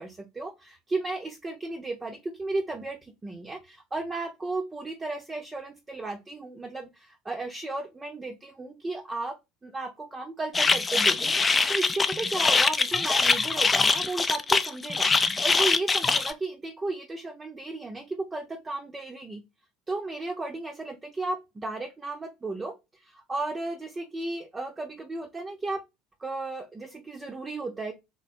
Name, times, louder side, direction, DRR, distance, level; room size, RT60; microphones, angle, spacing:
voice 1, 0.0-19.4 19.9-25.8 26.2-27.9, right 2 dB, 20° right, 3 dB, 0.7 m, -34 dB
sound 1, 10.5-16.3, left 4 dB, 20° left, 0.5 m, -23 dB
3.6 x 3.2 x 4.2 m, 0.24 s
figure-of-eight pair, 65°, 0 cm